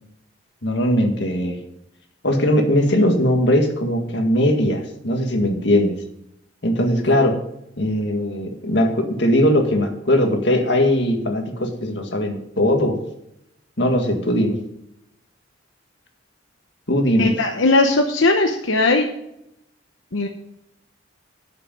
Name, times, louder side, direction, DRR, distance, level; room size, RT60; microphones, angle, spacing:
voice 1, 0.6-1.6 2.2-6.0 6.6-7.4 7.8-13.0 13.8-14.6 16.9-17.3, left 1 dB, 60° left, 3 dB, 1.9 m, -19 dB
voice 2, 17.2-19.1 20.1-20.3, left 2 dB, 85° left, 3 dB, 1.0 m, -18 dB
12.5 x 6.7 x 5.3 m, 0.80 s
head